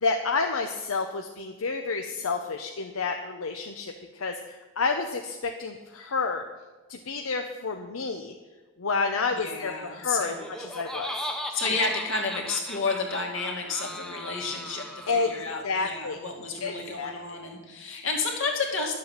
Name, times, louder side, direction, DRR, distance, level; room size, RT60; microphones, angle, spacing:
voice 1, 0.0-6.4 6.9-8.3 8.8-11.3 15.1-15.3 15.6-16.2 16.6-17.1, left 4 dB, 85° left, 4 dB, 0.8 m, -30 dB
voice 2, 9.3-10.4 11.5-19.0, left 3 dB, 65° left, 1 dB, 2.4 m, -31 dB
Laughter, 10.2-15.5, equal, 5° left, 0.8 m, -37 dB
11.5 x 7.6 x 7.4 m, 1.2 s
head